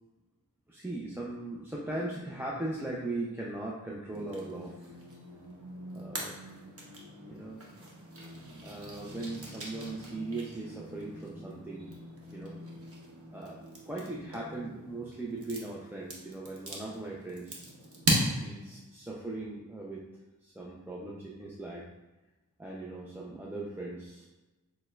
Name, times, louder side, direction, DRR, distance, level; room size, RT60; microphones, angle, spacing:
voice 1, 0.7-5.0 5.9-6.4 7.3-7.6 8.6-12.0 12.3-12.6 13.3-13.6 13.9-17.7 18.4-20.0 20.4-21.9 22.6-24.3, right 2 dB, 5° right, -4 dB, 0.4 m, -39 dB
forest stick sticks wood crackle snap break breaking, 4.1-18.8, right 1 dB, 40° right, 0.8 m, -39 dB
6.4 x 2.1 x 2.2 m, 1.1 s
wide cardioid pair, 85°, 34 cm